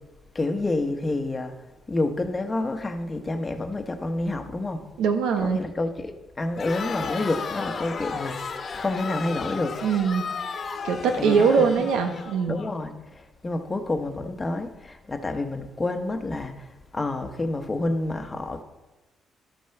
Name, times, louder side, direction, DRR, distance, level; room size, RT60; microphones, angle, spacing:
voice 1, 0.3-1.6 1.9-4.8 5.4-9.8 11.1-11.9 12.5-18.6, left 2 dB, 25° left, 1.2 m, -29 dB
voice 2, 5.0-5.6 9.8-10.3 10.8-12.6, right 6 dB, 90° right, 1.1 m, -22 dB
Crowd, 6.5-12.7, left 5 dB, 50° left, 1.3 m, -34 dB
12.0 x 6.2 x 5.9 m
cardioid pair, 90°, 0 cm